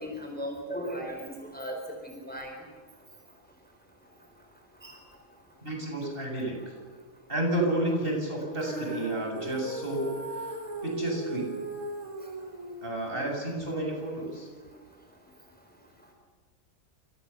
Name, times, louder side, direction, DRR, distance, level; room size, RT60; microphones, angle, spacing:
voice 1, 0.0-1.7 2.3-2.5, equal, 5° left, 2 dB, 4.5 m, -36 dB
voice 2, 5.6-6.7 7.3-10.1 10.8-11.5 12.8-14.5, right 1 dB, 40° right, 0 dB, 7.6 m, -31 dB
Female singing, 8.6-14.8, right 2 dB, 75° right, 4.5 m, -38 dB
29.5 x 27.5 x 7.1 m, 1.4 s
omnidirectional pair, 1.5 m